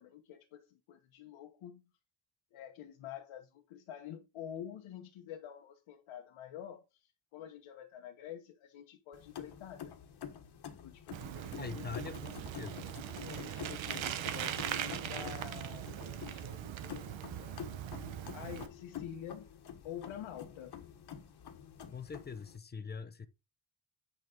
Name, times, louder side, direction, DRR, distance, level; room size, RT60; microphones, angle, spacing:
voice 1, 0.0-1.9 2.5-9.9 10.8-11.8 13.2-17.6 18.3-19.5 19.8-20.7, left 10 dB, 85° left, 1.3 m, -48 dB
sound 1, 9.1-22.6, left 8 dB, 55° left, 1.5 m, -48 dB
Bicycle, 11.1-18.7, right 11 dB, 65° right, 1.0 m, -40 dB
voice 2, 11.6-12.9 21.9-23.3, left 5 dB, 20° left, 0.6 m, -43 dB
9.1 x 5.1 x 3.9 m
cardioid pair, 175°, 48 cm